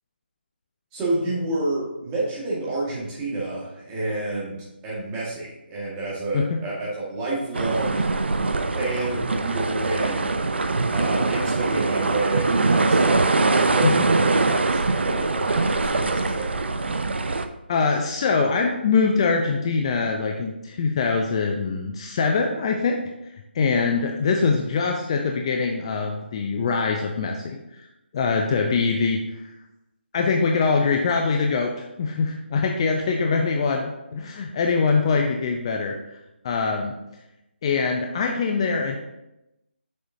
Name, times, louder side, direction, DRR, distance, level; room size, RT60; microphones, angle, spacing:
voice 1, 0.9-8.0 8.8-10.3 10.9-16.5, right 2 dB, 15° right, -6 dB, 1.8 m, -29 dB
sound 1, 7.5-17.4, right 3 dB, 70° right, 0.6 m, -22 dB
voice 2, 17.7-23.0 23.5-27.6 28.1-29.2 30.1-35.9 36.4-36.9 37.6-39.0, left 4 dB, 30° left, 2 dB, 0.5 m, -23 dB
6.4 x 6.3 x 2.7 m, 0.90 s
figure-of-eight pair, 155°, 6 cm